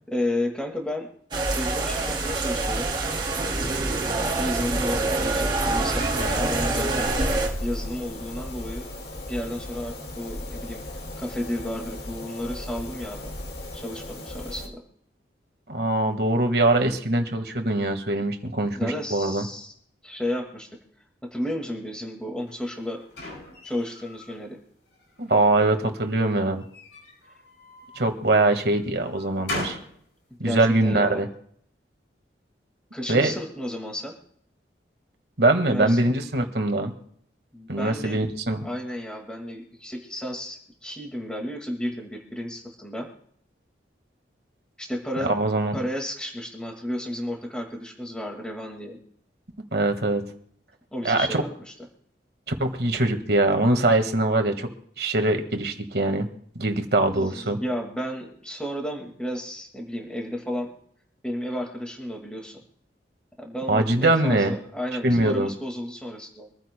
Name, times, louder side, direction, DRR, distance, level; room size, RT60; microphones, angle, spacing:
voice 1, 0.1-1.1 1.5-2.9 4.3-7.1 7.6-8.9 9.3-10.8 11.2-13.3 13.7-14.8 18.8-19.7 20.0-20.7 21.3-23.0 23.6-24.6 30.4-31.2 32.9-34.2 35.7-36.1 37.5-38.2 38.6-43.1 44.8-45.3 45.7-49.0 50.9-51.7 57.1-60.7 61.2-62.6 63.4-66.5, left 1 dB, 5° left, 1 dB, 1.9 m, -32 dB
sound 1, 1.3-7.5, right 2 dB, 25° right, 2.7 m, -26 dB
sound 2, 6.0-14.7, left 1 dB, 65° left, 1.9 m, -35 dB
voice 2, 15.7-19.4 25.2-26.6 27.9-29.8 30.4-31.3 33.1-33.3 35.4-36.9 37.7-38.7 45.2-45.8 49.7-50.2 51.0-51.4 52.6-54.7 55.0-56.3 56.5-57.6 63.7-64.5 65.0-65.5, right 2 dB, 60° right, 6 dB, 1.7 m, -22 dB
sound 3, 22.5-24.4 24.9-25.6 26.6-28.1 28.6-30.0, left 1 dB, 85° left, 5.6 m, -38 dB
25.0 x 14.5 x 2.2 m, 0.64 s
head